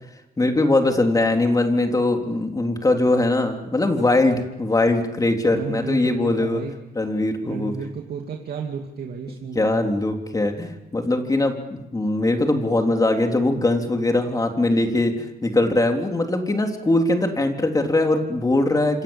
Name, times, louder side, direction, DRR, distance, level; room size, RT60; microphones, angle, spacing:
voice 1, 0.4-6.6 7.0-7.7 9.6-19.0, left 2 dB, 25° left, 3 dB, 3.6 m, -21 dB
voice 2, 5.5-6.7 7.4-9.9, right 6 dB, 85° right, 1 dB, 2.7 m, -32 dB
27.0 x 27.0 x 7.4 m, 0.95 s
wide cardioid pair, 120°, 16 cm